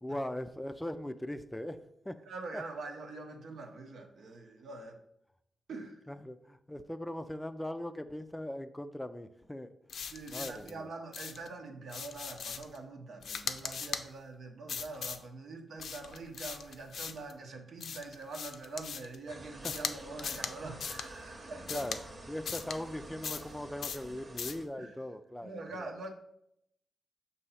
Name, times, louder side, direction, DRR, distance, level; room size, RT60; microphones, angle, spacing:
voice 1, 0.0-2.2 2.5-2.6 6.1-9.7 10.3-10.9 19.6-19.7 21.7-22.0 22.3-25.9, left 1 dB, 10° left, 9 dB, 0.4 m, -40 dB
voice 2, 2.3-5.0 5.7-6.0 10.1-21.9 24.8-24.9 25.4-26.1, right 3 dB, 75° right, 3 dB, 0.9 m, -44 dB
sound 1, 9.9-10.7 11.1-11.5 11.9-12.8 13.2-14.0 14.7-15.2 15.8-17.3 17.8-19.1 19.6-19.9 20.2-20.5 20.8-21.1 21.7-22.0 22.4-22.8 23.2-23.5 23.8-24.0 24.4-24.6, left 6 dB, 75° left, 0.4 m, -39 dB
sound 2, 19.3-24.7, right 2 dB, 40° right, 1.0 m, -49 dB
6.5 x 2.7 x 5.6 m, 0.78 s
cardioid pair, 85°, 0 cm